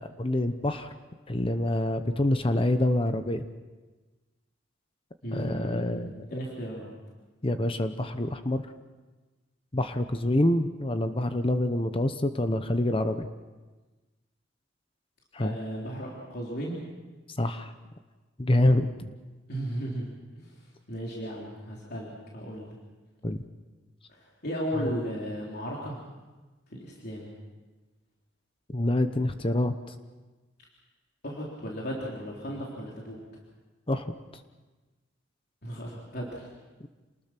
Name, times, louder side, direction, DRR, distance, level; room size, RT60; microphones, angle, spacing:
voice 1, 0.2-0.9 1.3-3.4 5.3-6.1 7.4-8.6 9.7-13.3 15.3-15.6 17.4-17.7 18.4-19.1 23.2-23.4 28.7-29.7 33.9-34.1, left 1 dB, 30° left, 9 dB, 0.9 m, -26 dB
voice 2, 5.2-6.0 6.3-6.9 15.4-16.8 19.5-20.1 20.4-20.5 20.9-22.8 24.1-26.0 26.7-27.3 31.2-33.2 35.6-36.5, equal, 55° left, -3 dB, 3.7 m, -35 dB
28.0 x 20.0 x 6.0 m, 1.2 s
head